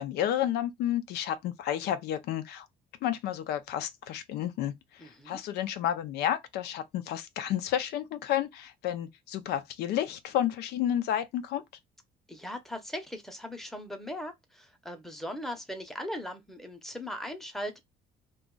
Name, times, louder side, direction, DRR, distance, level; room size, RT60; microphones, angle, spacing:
voice 1, 0.0-2.7 3.0-11.6, left 11 dB, 75° left, 0.5 m, -31 dB
voice 2, 5.0-5.4 12.3-17.8, left 1 dB, ahead, 0.7 m, -39 dB
2.5 x 2.3 x 3.7 m
cardioid pair, 110°, 17 cm